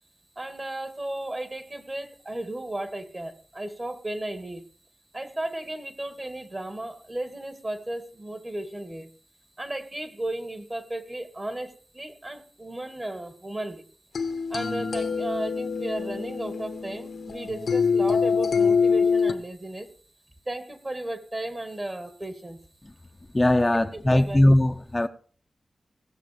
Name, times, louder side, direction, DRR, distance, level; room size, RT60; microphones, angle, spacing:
voice 1, 0.4-4.6 5.1-9.1 9.6-13.8 14.5-19.9 20.5-22.6 24.1-24.4, right 1 dB, 30° right, 2.1 m, -34 dB
sound 1, 14.1-19.3, left 5 dB, 85° left, 1.0 m, -25 dB
voice 2, 23.3-25.1, left 1 dB, 20° left, 0.7 m, -20 dB
17.5 x 6.7 x 5.1 m
cardioid pair, 65°, 0 cm